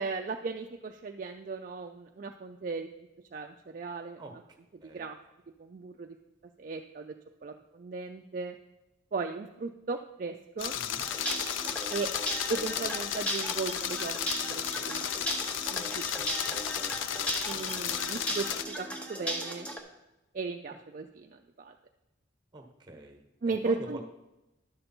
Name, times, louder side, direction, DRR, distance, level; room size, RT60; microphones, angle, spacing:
voice 1, 0.0-2.9 3.3-4.2 4.9-5.2 5.6-6.2 6.6-7.2 7.4-8.6 9.1-10.7 11.9-12.1 12.5-15.1 15.7-16.0 17.5-19.7 20.3-21.7 23.4-24.0, right 4 dB, 45° right, 4 dB, 0.4 m, -36 dB
sound 1, 10.6-18.6, left 9 dB, 80° left, 0.4 m, -34 dB
voice 2, 10.7-11.0 16.1-16.6 17.1-17.2 17.5-17.7 20.7-20.8 22.5-24.0, right 2 dB, 20° right, 3 dB, 1.2 m, -46 dB
sound 2, 11.0-19.8, right 1 dB, 5° left, 0.8 m, -36 dB
11.0 x 6.7 x 4.3 m, 0.96 s
head